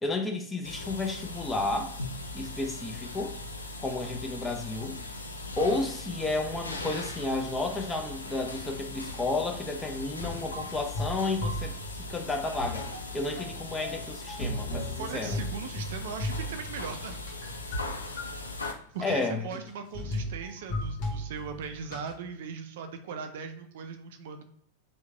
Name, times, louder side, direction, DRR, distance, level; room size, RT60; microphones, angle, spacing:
voice 1, 0.0-1.9 2.3-3.4 3.8-5.0 5.6-11.7 12.0-12.9 13.1-15.4 19.0-19.4, left 2 dB, 10° left, 3 dB, 0.6 m, -32 dB
sound 1, 0.6-18.7, left 2 dB, 80° left, 0.4 m, -39 dB
sound 2, 10.2-12.3 12.6-17.9 18.2-18.7 19.2-19.3 19.5-19.7 19.9-22.1, left 1 dB, 45° left, 1.0 m, -36 dB
voice 2, 15.0-17.2 18.2-18.6 18.9-24.4, right 6 dB, 55° right, 7 dB, 0.4 m, -39 dB
3.1 x 2.2 x 3.3 m, 0.67 s
figure-of-eight pair, 90°, 0 cm